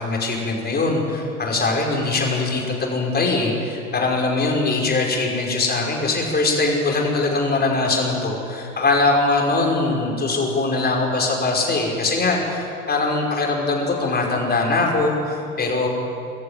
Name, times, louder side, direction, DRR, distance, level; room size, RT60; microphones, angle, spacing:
voice 1, 0.0-15.9, left 3 dB, 25° left, 0 dB, 5.6 m, -22 dB
23.0 x 14.0 x 9.1 m, 2.7 s
figure-of-eight pair, 75°, 41 cm